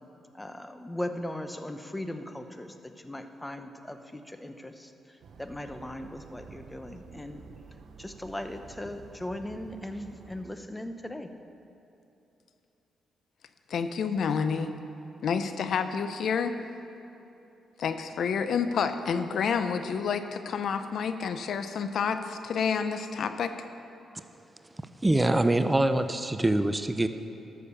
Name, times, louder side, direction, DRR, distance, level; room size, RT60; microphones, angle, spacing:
voice 1, 0.3-7.4 8.0-11.3, left 1 dB, 10° left, 8 dB, 0.8 m, -38 dB
sound 1, 5.2-10.5, right 5 dB, 70° right, 0.8 m, -50 dB
voice 2, 13.7-14.7 15.2-16.6 17.8-23.5, left 6 dB, 70° left, 10 dB, 0.6 m, -29 dB
voice 3, 25.0-27.1, right 1 dB, 15° right, 10 dB, 0.5 m, -24 dB
12.5 x 6.6 x 6.8 m, 2.9 s
cardioid pair, 75°, 0 cm